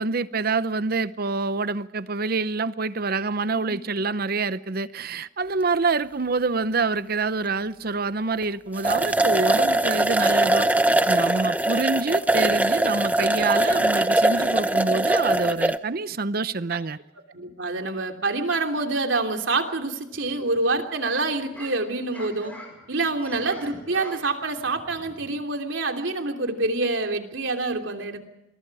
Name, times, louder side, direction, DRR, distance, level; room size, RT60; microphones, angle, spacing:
voice 1, 0.0-17.0, right 3 dB, 50° right, 0.7 m, -26 dB
sound 1, 8.4-8.5 8.8-15.8, right 1 dB, 10° right, 0.7 m, -21 dB
voice 2, 17.3-22.5 22.9-28.2, right 3 dB, 80° right, 3.2 m, -26 dB
sound 2, 20.1-20.8 21.3-25.5, left 1 dB, 10° left, 6.8 m, -44 dB
28.0 x 23.0 x 4.9 m
head